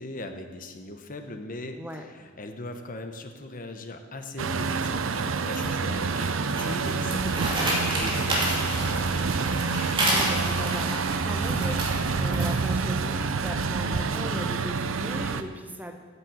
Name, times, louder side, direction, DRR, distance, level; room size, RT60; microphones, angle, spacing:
voice 1, 0.0-9.4, left 2 dB, 40° left, 6 dB, 1.0 m, -40 dB
Truck, 4.4-15.4, right 4 dB, 75° right, 0.6 m, -27 dB
sound 1, 5.5-12.8, right 1 dB, 25° right, 2.6 m, -31 dB
voice 2, 6.8-7.2 10.0-16.0, equal, 10° right, 4 dB, 1.0 m, -38 dB
9.7 x 7.5 x 8.3 m, 1.5 s
head